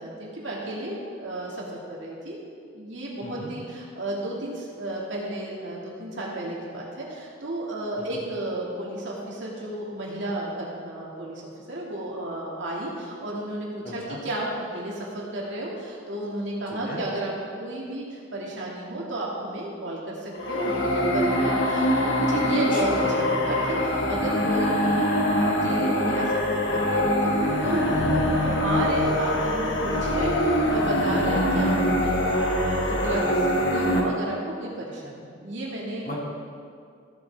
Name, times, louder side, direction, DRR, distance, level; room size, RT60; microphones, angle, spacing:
voice 1, 0.0-2.4 2.7-17.3 17.6-36.1, right 1 dB, 70° right, -4 dB, 2.3 m, -33 dB
voice 2, 13.8-14.2 16.9-17.0 22.7-23.1 27.8-28.1 36.1-36.2, left 1 dB, 45° left, -5 dB, 2.4 m, -36 dB
sound 1, 20.4-34.0, left 1 dB, 70° left, 1.3 m, -23 dB
15.0 x 7.9 x 3.5 m, 2.2 s
head